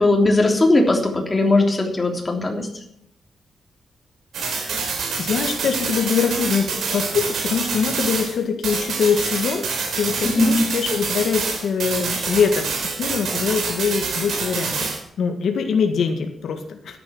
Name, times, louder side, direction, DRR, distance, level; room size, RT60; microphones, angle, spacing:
voice 1, 0.0-2.7 10.2-10.5, left 2 dB, 20° left, 1 dB, 3.4 m, -18 dB
sound 1, 4.3-8.4 8.6-15.0, right 5 dB, 85° right, 4.0 m, -26 dB
voice 2, 4.5-9.7 10.0-14.9 15.2-17.0, left 6 dB, 80° left, 5 dB, 1.8 m, -23 dB
14.0 x 10.5 x 6.1 m, 0.72 s
wide cardioid pair, 145°, 0 cm